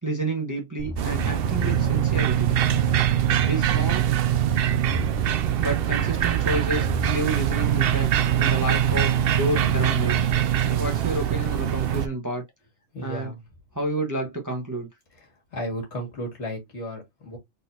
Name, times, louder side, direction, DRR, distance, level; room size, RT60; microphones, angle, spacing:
voice 1, 0.0-2.6 3.4-4.0 5.6-10.3 10.6-12.4 13.0-13.3 13.7-14.9, right 2 dB, 15° right, 1.0 m, -30 dB
sound 1, 0.8-10.3, left 1 dB, 10° left, 0.5 m, -35 dB
sound 2, 1.0-12.1, right 11 dB, 65° right, 0.6 m, -23 dB
voice 2, 12.9-13.4 15.5-17.4, equal, 60° left, 2.2 m, -33 dB
4.0 x 3.9 x 2.7 m
omnidirectional pair, 1.3 m